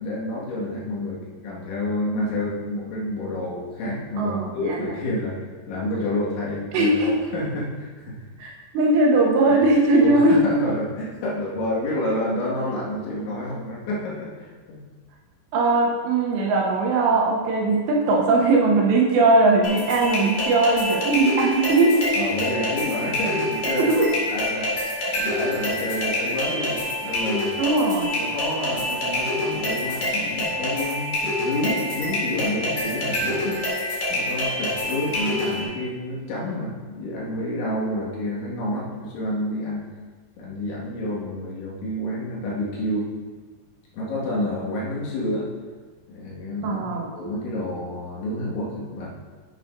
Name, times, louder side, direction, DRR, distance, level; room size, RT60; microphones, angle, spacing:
voice 1, 0.0-5.4 5.7-8.2 9.4-9.6 10.0-14.8 22.1-24.0 24.3-24.7 25.1-27.5 28.2-33.6 34.1-39.9 40.4-43.1 43.9-45.5 46.1-46.8 47.1-49.1, left 1 dB, 80° left, -6 dB, 4.3 m, -29 dB
voice 2, 4.2-4.9 6.7-7.1 8.4-10.5 15.5-22.1 23.8-24.1 27.6-28.2 46.6-47.1, right 2 dB, 75° right, -2 dB, 2.9 m, -19 dB
sound 1, 19.6-35.6, left 1 dB, 50° left, 3.1 m, -27 dB
10.5 x 9.4 x 2.6 m, 1.4 s
omnidirectional pair, 5.4 m